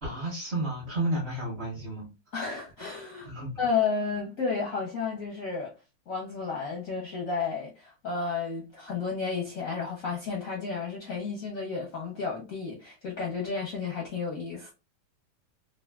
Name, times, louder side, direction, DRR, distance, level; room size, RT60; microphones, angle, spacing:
voice 1, 0.0-2.1 3.2-3.7, right 1 dB, 40° right, 1.0 m, -32 dB
voice 2, 2.3-3.3 3.6-5.7 6.1-14.7, left 5 dB, 65° left, 0.9 m, -32 dB
3.3 x 2.5 x 2.2 m
omnidirectional pair, 2.2 m